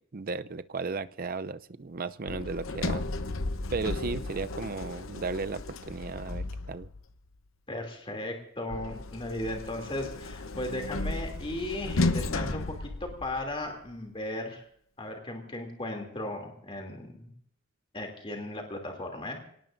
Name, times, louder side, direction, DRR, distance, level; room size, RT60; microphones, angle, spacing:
voice 1, 0.1-3.0 3.7-6.9, right 4 dB, 45° right, 13 dB, 0.6 m, -35 dB
Sliding door, 2.3-7.1 8.7-13.6, left 2 dB, 90° left, 0.9 m, -34 dB
voice 2, 7.7-12.7 13.0-14.7 15.0-17.3 17.9-19.4, left 1 dB, 25° left, 2 dB, 2.8 m, -36 dB
26.5 x 18.0 x 2.6 m, 0.63 s
head